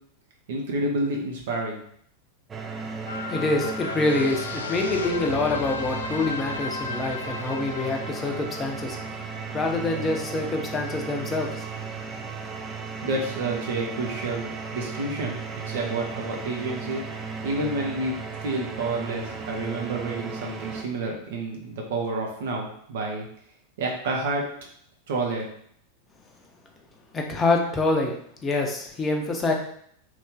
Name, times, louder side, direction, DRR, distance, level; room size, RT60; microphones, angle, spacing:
voice 1, 0.5-1.8 13.0-15.4 15.6-17.0 17.4-18.2 18.4-23.3 23.8-24.4 25.1-25.5, right 2 dB, 55° right, 0 dB, 0.8 m, -29 dB
sound 1, 2.5-20.8, right 4 dB, 20° right, 0.4 m, -35 dB
sound 2, 3.0-9.7 10.1-10.2, left 4 dB, 70° left, 0.3 m, -35 dB
voice 2, 3.3-9.0 9.5-11.6 27.1-29.5, left 2 dB, 20° left, 1 dB, 0.7 m, -26 dB
3.1 x 2.7 x 3.7 m, 0.66 s
figure-of-eight pair, 90°, 0 cm